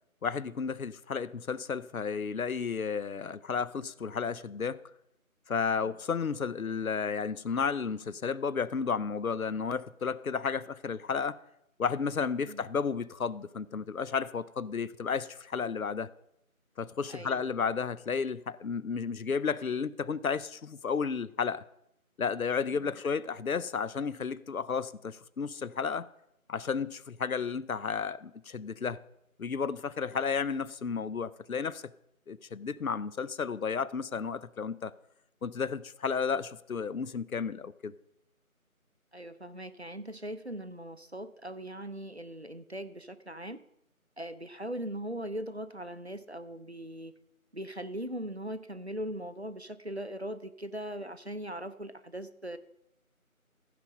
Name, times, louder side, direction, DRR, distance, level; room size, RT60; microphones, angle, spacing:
voice 1, 0.2-4.8 5.5-11.4 11.8-16.1 16.8-21.6 22.2-26.1 26.5-29.0 29.4-31.8 32.3-34.9 35.4-37.9, left 6 dB, 75° left, 0.6 m, -32 dB
voice 2, 17.1-17.5 22.7-22.9 39.1-43.6 44.2-47.1 47.5-52.6, right 1 dB, 50° right, 0.6 m, -40 dB
15.0 x 5.1 x 5.4 m
figure-of-eight pair, 175°, 43 cm